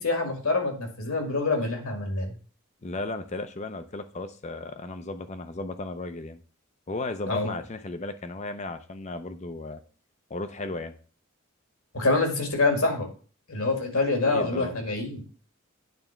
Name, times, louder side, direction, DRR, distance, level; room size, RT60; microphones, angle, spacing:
voice 1, 0.0-2.3 7.3-7.5 11.9-13.1 13.5-15.2, left 3 dB, 85° left, 3 dB, 2.1 m, -26 dB
voice 2, 2.8-6.4 6.9-9.8 10.3-10.9 14.3-14.7, left 2 dB, 35° left, 9 dB, 0.5 m, -35 dB
9.2 x 3.4 x 5.8 m, 0.39 s
head